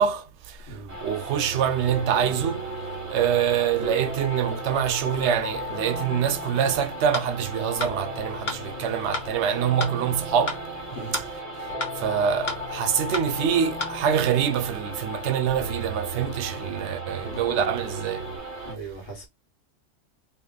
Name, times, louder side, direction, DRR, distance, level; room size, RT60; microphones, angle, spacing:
voice 1, 0.0-2.7 3.1-10.6 11.1-11.2 12.0-18.3, right 8 dB, 70° right, 0.8 m, -25 dB
voice 2, 0.7-1.0 10.9-11.1 18.6-19.3, right 3 dB, 80° left, 1.5 m, -38 dB
sound 1, 0.9-18.7, equal, 15° right, 0.7 m, -37 dB
sound 2, 1.3-18.4, right 2 dB, 20° left, 1.5 m, -39 dB
sound 3, 7.1-7.3 7.8-7.9 8.5-8.6 9.1-9.3 9.8-9.9 10.5-10.6 11.1-11.3 11.8-11.9 12.5-12.6 13.1-13.3 13.8-13.9, left 3 dB, 45° left, 0.7 m, -30 dB
2.8 x 2.5 x 3.7 m
omnidirectional pair, 1.3 m